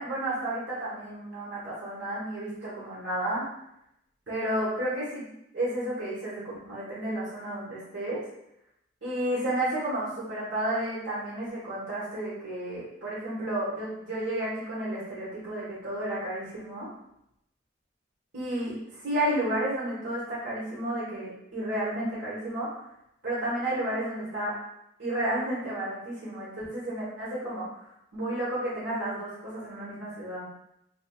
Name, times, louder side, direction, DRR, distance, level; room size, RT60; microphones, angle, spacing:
voice 1, 0.0-3.4 4.3-5.3 5.5-8.2 9.0-16.9 18.3-22.7 23.2-24.6 25.0-27.8 28.1-30.5, right 1 dB, 75° right, -9 dB, 1.4 m, -32 dB
6.2 x 2.2 x 2.4 m, 0.81 s
head